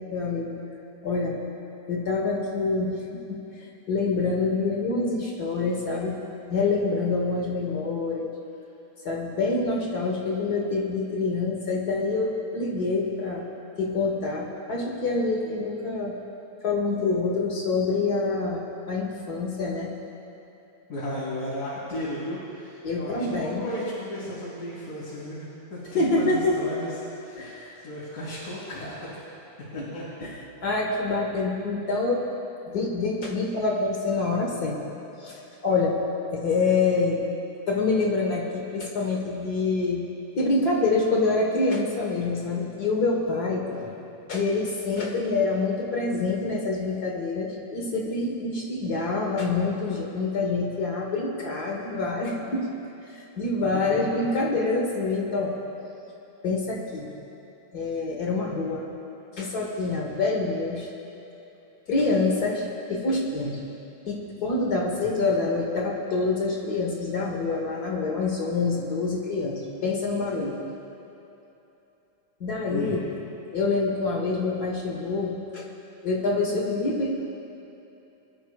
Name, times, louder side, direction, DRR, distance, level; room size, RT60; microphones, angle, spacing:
voice 1, 0.1-0.6 1.0-1.4 1.9-3.4 3.9-6.2 6.5-8.3 9.0-13.4 13.8-16.1 16.6-18.6 18.9-19.9 22.8-23.6 25.9-26.6 27.4-27.8 29.7-29.8 30.2-30.3 30.6-32.2 32.7-34.8 35.2-35.9 36.3-37.2 37.7-40.1 40.3-43.6 44.3-52.7 53.1-55.6 56.4-57.1 57.7-58.8 59.3-60.9 61.9-62.6 62.9-63.6 64.1-70.6 72.4-73.0 73.5-75.7 76.0-77.1, left 3 dB, 50° left, -1 dB, 1.2 m, -26 dB
voice 2, 20.9-25.4 25.7-26.9 27.2-29.2 29.7-30.1 43.7-43.9 53.6-54.3 64.9-65.1 72.6-73.0, left 1 dB, 70° left, -10 dB, 4.5 m, -35 dB
24.5 x 13.0 x 2.4 m, 2.9 s
omnidirectional pair, 3.6 m